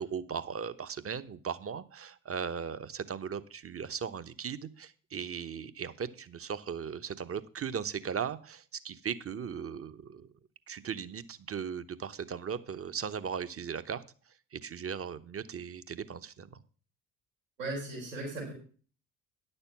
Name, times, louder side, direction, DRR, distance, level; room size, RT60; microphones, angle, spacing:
voice 1, 0.0-10.3 10.7-14.0 14.5-16.6, right 7 dB, 35° right, 13 dB, 1.1 m, -38 dB
voice 2, 17.6-18.5, right 2 dB, 90° right, -3 dB, 4.4 m, -37 dB
10.5 x 6.8 x 5.8 m, 0.39 s
hypercardioid pair, 55°, 38 cm